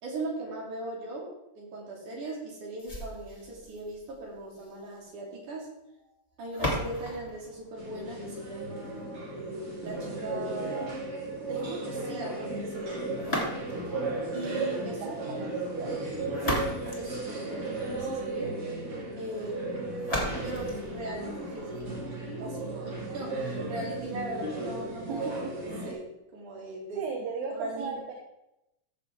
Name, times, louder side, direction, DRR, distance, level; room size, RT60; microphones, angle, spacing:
voice 1, 0.0-5.7 6.4-11.0 11.4-13.5 14.3-15.1 15.4-15.6 16.4-18.5 19.2-20.1 20.4-25.3 25.9-27.0 27.5-28.0, right 2 dB, 60° right, -3 dB, 4.3 m, -39 dB
sound 1, 2.8-8.8 13.2-14.0 16.0-18.0 20.0-22.0, left 1 dB, 10° left, 2.6 m, -37 dB
sound 2, 7.8-25.9, right 2 dB, 45° right, 3.1 m, -35 dB
voice 2, 15.0-15.9 25.1-25.5 27.0-28.1, right 5 dB, 80° right, 1 dB, 2.8 m, -36 dB
15.0 x 7.0 x 3.6 m, 0.88 s
omnidirectional pair, 4.0 m